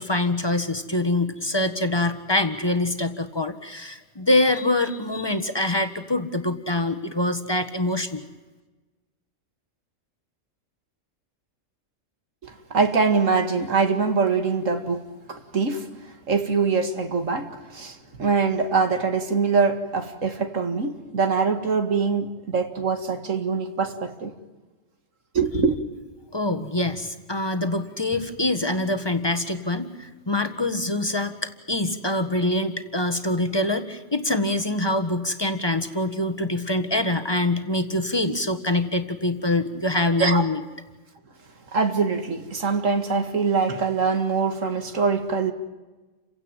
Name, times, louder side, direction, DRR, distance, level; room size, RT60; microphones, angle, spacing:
voice 1, 0.0-8.2 26.3-31.3 31.7-40.6, left 2 dB, 20° left, 9 dB, 1.5 m, -24 dB
voice 2, 12.4-15.9 16.3-24.3 25.3-25.8 40.2-40.4 41.7-45.5, right 4 dB, 70° right, 7 dB, 2.4 m, -23 dB
29.5 x 16.5 x 9.1 m, 1.2 s
omnidirectional pair, 1.4 m